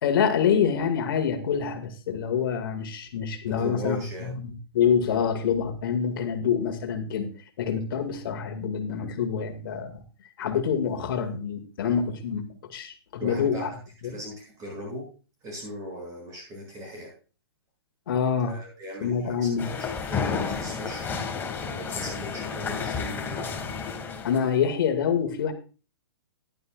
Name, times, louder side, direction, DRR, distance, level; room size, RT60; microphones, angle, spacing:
voice 1, 0.0-7.3 7.6-10.0 10.4-13.7 14.0-14.2 18.1-18.6 19.0-19.7 24.2-25.5, left 7 dB, 60° left, 6 dB, 2.0 m, -26 dB
voice 2, 3.6-4.3 10.7-10.9 13.2-13.8 14.0-15.1 15.4-17.1 18.4-23.5, equal, 25° right, -1 dB, 7.4 m, -38 dB
sound 1, 19.6-24.5, left 5 dB, 15° left, 1.8 m, -31 dB
14.5 x 11.0 x 2.4 m, 0.35 s
hypercardioid pair, 135°, 13 cm